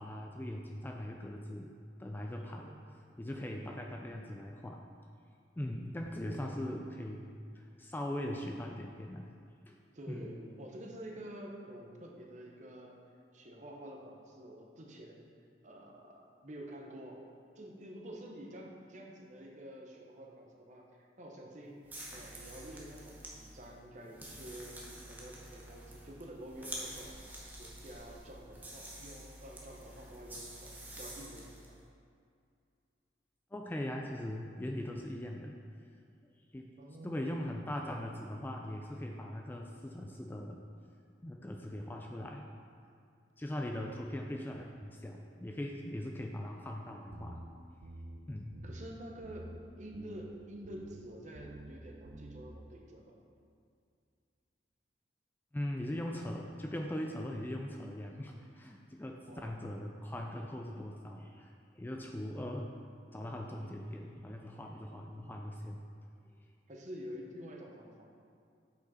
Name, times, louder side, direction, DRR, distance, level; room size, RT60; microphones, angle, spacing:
voice 1, 0.0-1.7 2.0-2.7 3.2-4.8 5.6-9.3 9.7-9.8 10.1-10.3 33.5-35.5 36.5-36.7 37.0-40.6 41.2-42.5 43.4-47.4 47.7-47.8 48.3-48.6 55.5-62.7 63.1-65.8, left 1 dB, 10° left, 1 dB, 0.3 m, -40 dB
voice 2, 2.5-2.8 6.1-7.0 9.9-13.1 13.3-15.2 15.6-17.2 17.6-21.8 22.1-27.2 27.6-31.6 36.8-37.5 48.6-53.1 56.2-56.4 59.3-59.6 66.7-68.2, right 1 dB, 45° right, 0 dB, 0.8 m, -49 dB
sound 1, 21.8-31.7, right 1 dB, 10° right, 0.8 m, -48 dB
sound 2, 47.1-47.5 47.8-48.2 48.5-48.9 49.2-49.6 49.9-50.3 50.6-51.0 51.3-51.7 52.1-52.4, right 2 dB, 80° right, 0.7 m, -48 dB
6.5 x 5.1 x 4.1 m, 2.3 s
head